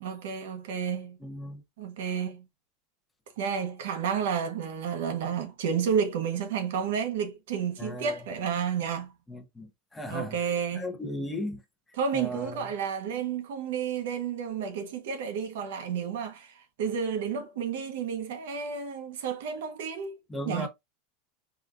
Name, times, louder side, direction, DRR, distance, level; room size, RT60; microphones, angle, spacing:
voice 1, 0.0-1.2 1.8-2.4 3.4-9.1 10.1-10.9 12.0-20.2 20.5-20.7, right 7 dB, 80° right, 0.7 m, -31 dB
voice 2, 1.2-1.6 7.8-8.2 9.3-10.4 10.7-11.6 12.1-12.6 20.3-20.7, left 1 dB, 10° left, 0.5 m, -36 dB
3.8 x 2.2 x 2.4 m
supercardioid pair, 165°, 0 cm